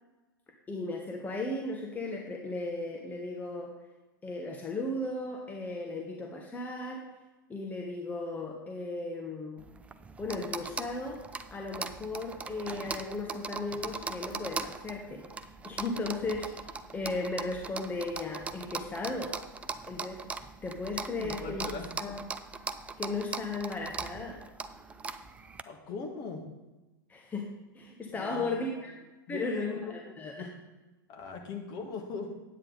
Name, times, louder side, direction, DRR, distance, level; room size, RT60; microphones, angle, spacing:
voice 1, 0.7-3.7 4.2-7.0 7.5-9.6 10.2-11.2 11.5-15.2 15.6-16.5 16.9-19.3 19.9-20.3 20.6-21.7 22.0-22.2 23.0-24.4 27.1-28.9 29.3-30.5, left 2 dB, 15° left, 1 dB, 1.1 m, -36 dB
sound 1, 9.6-25.6, right 4 dB, 10° right, 0.4 m, -40 dB
voice 2, 21.2-21.9 25.7-26.5 28.1-28.8 29.3-30.5 31.1-32.3, left 4 dB, 35° left, 2 dB, 1.9 m, -40 dB
9.8 x 8.8 x 4.0 m, 1.1 s
figure-of-eight pair, 95°, 12 cm